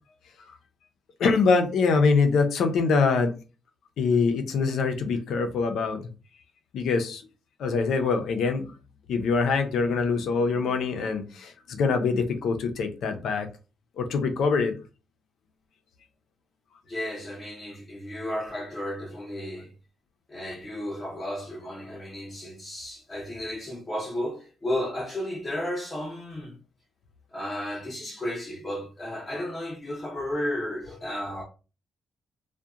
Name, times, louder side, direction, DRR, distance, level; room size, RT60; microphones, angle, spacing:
voice 1, 1.2-3.3 4.0-6.0 6.7-7.2 7.6-8.7 9.1-13.5 14.0-14.7, left 4 dB, 70° left, 0.5 m, -24 dB
voice 2, 16.9-19.7 20.3-26.6 27.3-31.4, left 1 dB, 20° left, 0.7 m, -33 dB
2.7 x 2.1 x 2.3 m
cardioid pair, 110°, 0 cm